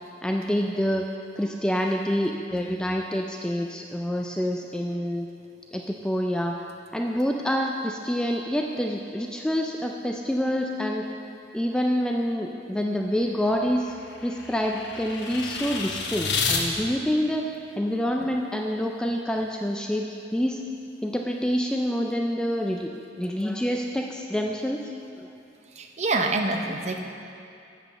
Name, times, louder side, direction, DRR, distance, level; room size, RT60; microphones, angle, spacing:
voice 1, 0.2-1.1 1.4-5.3 5.7-6.6 6.9-11.1 11.5-13.9 14.2-17.4 17.8-20.1 20.3-20.6 21.0-22.9 23.2-24.8 25.2-25.3, equal, 5° left, 1 dB, 0.3 m, -27 dB
sound 1, 13.0-16.6, left 5 dB, 75° left, 1.0 m, -31 dB
voice 2, 25.8-27.0, right 3 dB, 40° right, 4 dB, 0.6 m, -26 dB
7.6 x 6.0 x 6.8 m, 2.7 s
head